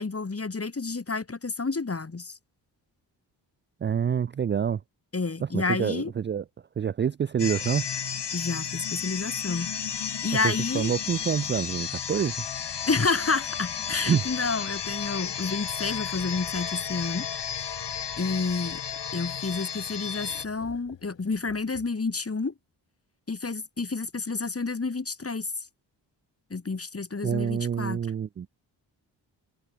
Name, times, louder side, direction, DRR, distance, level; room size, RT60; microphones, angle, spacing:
voice 1, 0.0-2.4 5.1-6.1 8.3-9.7 10.2-10.9 12.9-17.3 18.2-18.8 19.1-22.5 23.3-25.5 26.5-28.0, left 4 dB, 30° left, 2.7 m, -30 dB
voice 2, 3.8-4.8 5.5-6.4 6.8-7.9 10.4-12.3 14.1-14.2 27.2-28.5, right 8 dB, 30° right, 0.3 m, -27 dB
sound 1, 7.4-20.5, left 8 dB, 70° left, 2.9 m, -33 dB
sound 2, 16.0-17.3 18.1-19.7 20.2-22.2, left 10 dB, 90° left, 3.5 m, -53 dB
cardioid pair, 55°, 43 cm